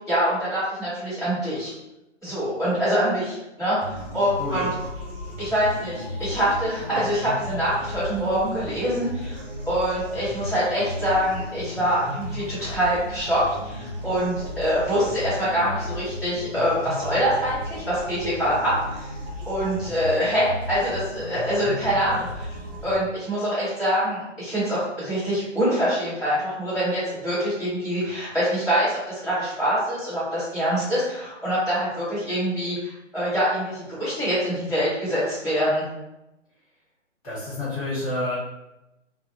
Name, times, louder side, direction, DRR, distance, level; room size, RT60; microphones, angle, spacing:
voice 1, 0.1-1.7 2.2-4.7 5.4-9.4 9.7-19.1 19.4-22.5 22.8-35.8, equal, ahead, -18 dB, 1.3 m, -25 dB
sound 1, 3.8-23.0, left 1 dB, 50° right, 0.8 m, -35 dB
voice 2, 4.4-4.7 37.2-38.3, left 2 dB, 30° left, -10 dB, 1.3 m, -29 dB
2.6 x 2.2 x 2.6 m, 0.93 s
figure-of-eight pair, 145°, 37 cm